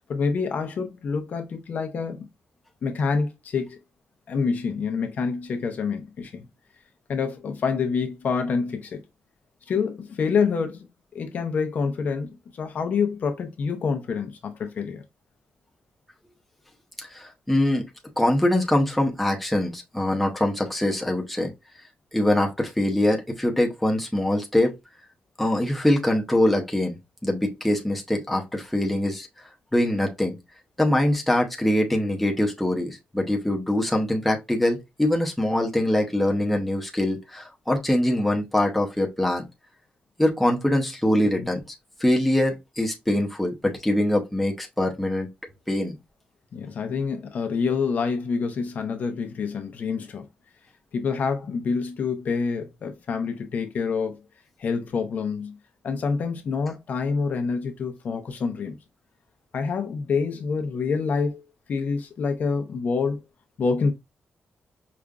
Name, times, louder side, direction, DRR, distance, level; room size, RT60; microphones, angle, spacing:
voice 1, 0.1-2.2 2.8-3.8 4.3-6.5 7.1-9.0 9.7-10.9 11.1-15.0 41.4-41.5 46.5-50.3 50.9-54.2 54.6-55.6 55.8-58.8 59.5-61.4 61.7-63.2 63.6-63.9, left 5 dB, 50° left, 0.7 m, -27 dB
voice 2, 17.0-17.8 18.2-21.5 22.1-24.7 25.4-27.0 27.2-29.3 29.7-30.4 30.8-39.4 40.2-41.6 42.0-45.3 45.7-46.0, left 1 dB, 5° left, 0.7 m, -23 dB
4.9 x 2.5 x 2.3 m
wide cardioid pair, 170°, 3 cm